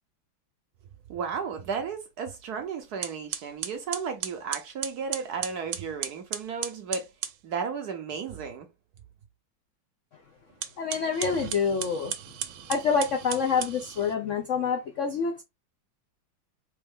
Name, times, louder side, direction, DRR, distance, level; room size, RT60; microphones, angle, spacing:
voice 1, 1.1-7.1 7.4-8.7, right 6 dB, 65° right, 1.0 m, -34 dB
sound 1, 2.5-2.6 3.0-7.4 10.5-14.2, right 9 dB, 85° right, 1.5 m, -36 dB
voice 2, 10.8-12.1 12.7-15.4, left 5 dB, 70° left, 0.7 m, -27 dB
4.3 x 3.0 x 3.5 m
omnidirectional pair, 2.2 m